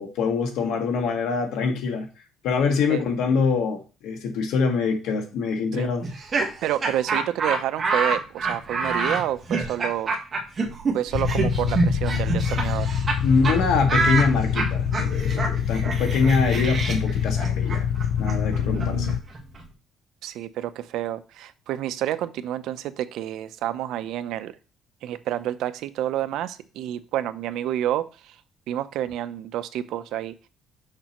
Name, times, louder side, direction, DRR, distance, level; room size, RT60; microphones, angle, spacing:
voice 1, 0.0-2.1 2.4-6.1 13.2-17.9 18.2-19.2, left 5 dB, 85° left, 1.8 m, -24 dB
Laughter, 6.0-13.2 13.4-13.6 13.9-19.6, right 3 dB, 30° right, 1.4 m, -27 dB
voice 2, 6.6-10.1 10.9-12.9 18.6-19.1 20.2-24.6 25.0-28.4 28.7-30.5, right 12 dB, 75° right, 0.6 m, -29 dB
sound 1, 11.1-19.2, left 8 dB, 60° left, 0.4 m, -25 dB
6.6 x 5.9 x 3.0 m
cardioid pair, 165°, 0 cm